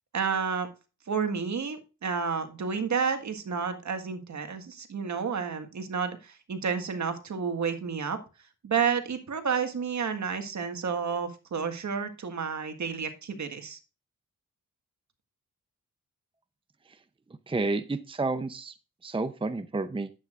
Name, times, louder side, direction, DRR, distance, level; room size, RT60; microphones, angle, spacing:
voice 1, 0.1-0.7 1.1-8.2 8.6-13.8, right 6 dB, 60° right, 7 dB, 1.7 m, -30 dB
voice 2, 17.5-18.7 19.0-20.1, right 3 dB, 15° right, 10 dB, 0.7 m, -30 dB
11.5 x 8.5 x 2.5 m, 0.31 s
wide cardioid pair, 110°, 32 cm